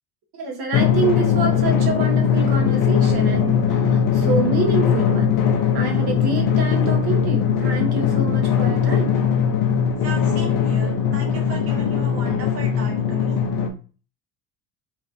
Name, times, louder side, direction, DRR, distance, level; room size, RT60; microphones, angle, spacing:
voice 1, 0.3-5.3 5.7-9.2, right 3 dB, 55° right, 2 dB, 0.9 m, -27 dB
Drum, 0.7-13.7, left 7 dB, 45° left, 0.5 m, -20 dB
voice 2, 10.0-13.4, right 3 dB, 35° right, 0 dB, 0.6 m, -36 dB
3.0 x 2.3 x 2.5 m, 0.37 s
cardioid pair, 110°, 45 cm